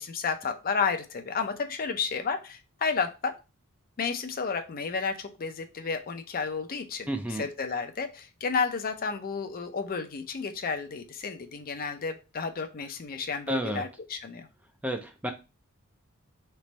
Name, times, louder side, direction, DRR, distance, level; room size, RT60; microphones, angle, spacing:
voice 1, 0.0-3.3 4.0-7.1 7.4-14.5, left 5 dB, 40° left, 8 dB, 0.5 m, -31 dB
voice 2, 7.1-7.5 13.5-13.8 14.8-15.3, right 1 dB, 5° right, 5 dB, 0.4 m, -31 dB
3.4 x 3.0 x 4.1 m, 0.29 s
head